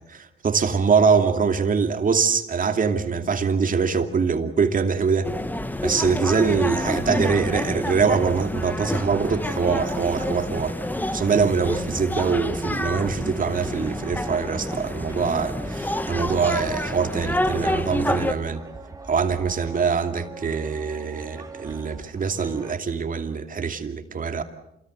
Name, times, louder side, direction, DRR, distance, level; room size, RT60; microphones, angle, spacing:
voice 1, 0.1-5.3 5.8-10.7 11.1-18.6 19.1-24.4, right 5 dB, 45° right, 2.6 m, -23 dB
sound 1, 5.2-18.3, left 1 dB, 10° left, 1.5 m, -28 dB
sound 2, 8.7-22.8, right 3 dB, 15° right, 2.9 m, -44 dB
28.0 x 21.0 x 8.0 m
cardioid pair, 90°, 20 cm